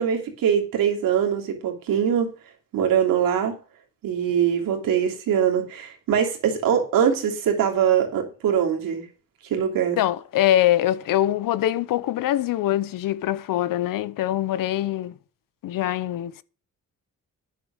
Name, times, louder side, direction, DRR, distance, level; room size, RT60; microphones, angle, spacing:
voice 1, 0.0-2.3 2.7-3.5 4.0-9.0 9.5-10.0, right 8 dB, 85° right, 2.9 m, -22 dB
voice 2, 10.0-15.1 15.6-16.4, left 13 dB, 75° left, 0.8 m, -23 dB
9.8 x 6.8 x 6.5 m
cardioid pair, 125°, 33 cm